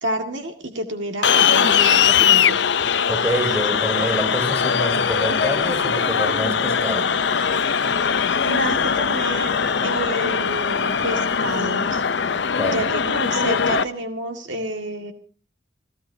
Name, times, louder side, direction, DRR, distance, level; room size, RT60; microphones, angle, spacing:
voice 1, 0.0-2.6 8.4-12.0 12.6-15.1, right 1 dB, 80° right, 5 dB, 1.9 m, -29 dB
sound 1, 1.2-13.8, left 7 dB, 70° left, 0.7 m, -20 dB
voice 2, 3.1-7.1 12.5-12.8, equal, 15° right, 3 dB, 5.3 m, -27 dB
29.0 x 15.5 x 2.8 m, 0.39 s
head